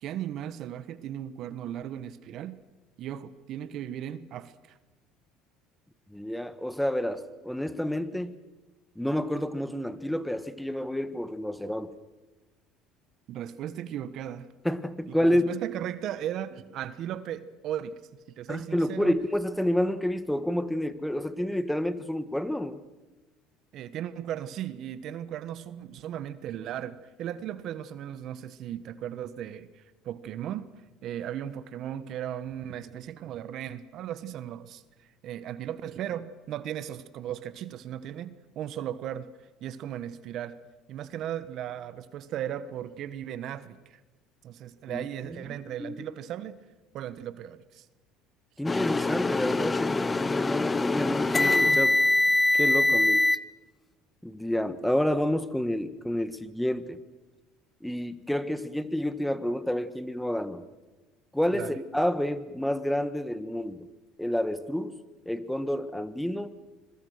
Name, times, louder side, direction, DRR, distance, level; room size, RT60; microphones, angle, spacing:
voice 1, 0.0-2.6 3.0-4.8 13.3-14.5 15.1-18.0 18.3-19.2 23.7-30.7 31.0-34.8 35.2-39.3 39.6-40.6 40.9-44.0 44.4-46.6 46.9-47.8 61.5-61.8, right 10 dB, 60° right, 1.2 m, -36 dB
voice 2, 6.1-8.4 8.9-12.0 14.6-15.5 18.5-22.8 44.9-45.1 45.5-46.1 48.6-52.0 52.5-53.3 54.2-57.0 57.8-60.6 61.3-63.9 64.2-66.6, equal, 5° left, 1.5 m, -29 dB
sound 1, 48.7-53.4, left 2 dB, 20° left, 0.8 m, -24 dB
25.5 x 22.0 x 6.5 m
supercardioid pair, 80°, 0 cm